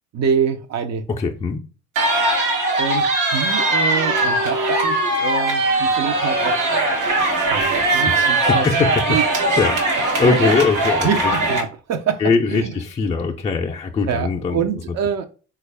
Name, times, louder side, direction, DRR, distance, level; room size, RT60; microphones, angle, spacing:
voice 1, 0.1-1.0 2.8-6.6 7.4-9.2 11.0-11.2 11.5-12.2 12.5-12.7 14.1-15.2, right 7 dB, 60° right, 0.5 m, -25 dB
voice 2, 1.1-1.6 8.1-9.8 10.2-11.3 12.2-14.6, left 4 dB, 20° left, 0.3 m, -21 dB
sound 1, 2.0-11.6, right 2 dB, 85° right, 1.0 m, -20 dB
3.4 x 2.3 x 3.2 m
cardioid pair, 90°, 30 cm